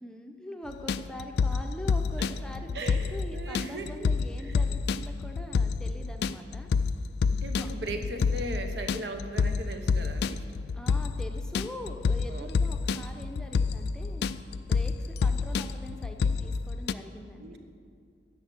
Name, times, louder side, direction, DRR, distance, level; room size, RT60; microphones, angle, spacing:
voice 1, 0.0-6.7 7.6-7.7 10.7-14.9 15.2-17.6, left 1 dB, 5° left, 3 dB, 0.7 m, -43 dB
sound 1, 0.7-16.9, left 5 dB, 60° left, 0.3 m, -28 dB
voice 2, 2.7-4.1 4.4-4.6 7.3-10.6 12.3-12.5 17.4-17.6, right 1 dB, 65° right, 6 dB, 1.0 m, -38 dB
11.0 x 7.2 x 8.0 m, 2.2 s
head